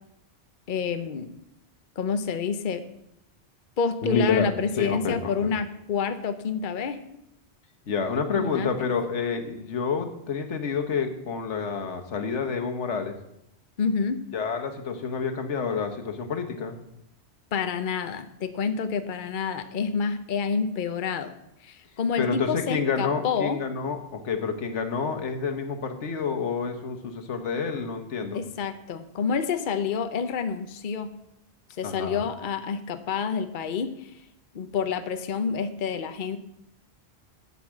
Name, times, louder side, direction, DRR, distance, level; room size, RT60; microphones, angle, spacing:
voice 1, 0.7-1.3 2.0-2.8 3.8-7.0 8.4-8.9 13.8-14.2 17.5-21.3 21.6-23.6 28.3-31.1 31.8-34.1 34.5-36.4, left 6 dB, 50° left, 9 dB, 0.8 m, -28 dB
voice 2, 4.0-4.5 4.8-5.5 7.9-13.2 14.3-16.8 22.2-28.4 31.8-32.3, left 5 dB, 90° left, 5 dB, 1.4 m, -28 dB
8.2 x 7.8 x 7.3 m, 0.81 s
omnidirectional pair, 1.2 m